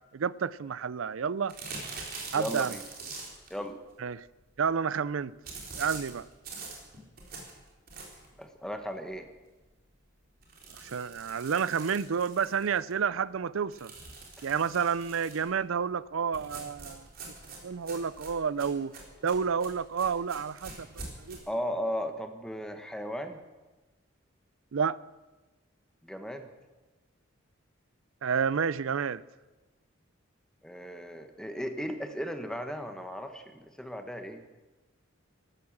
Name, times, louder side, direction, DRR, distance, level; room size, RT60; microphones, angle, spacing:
voice 1, 0.1-1.5 2.3-2.8 4.0-4.3 4.6-5.3 5.8-6.3 10.8-13.9 14.4-17.1 17.6-18.9 19.2-21.4 24.7-25.0 28.2-29.2, right 6 dB, 75° right, 0.5 m, -30 dB
sound 1, 1.5-3.6 5.4-8.4 8.8-8.9 9.2-9.3 9.6-9.7 10.4-12.9 13.7-15.5 16.3-21.4, right 3 dB, 45° right, 3.7 m, -44 dB
voice 2, 2.3-2.8 3.5-3.8 8.4-9.3 14.4-14.5 21.5-23.4 26.0-26.5 30.6-34.4, equal, 5° left, 1.2 m, -36 dB
14.0 x 12.5 x 7.3 m
head